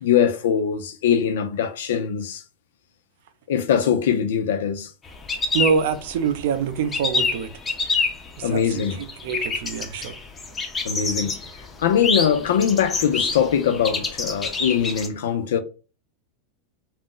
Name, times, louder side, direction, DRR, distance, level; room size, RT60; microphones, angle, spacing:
voice 1, 0.0-2.4 3.5-4.9 8.4-9.0 10.8-11.4 11.8-15.6, left 8 dB, 80° left, 0.4 m, -22 dB
sound 1, 5.1-6.4 6.7-15.1, left 3 dB, 10° left, 0.4 m, -27 dB
voice 2, 5.5-7.5 8.4-10.2, right 6 dB, 60° right, 0.4 m, -25 dB
2.4 x 2.0 x 3.7 m
supercardioid pair, 170°, 0 cm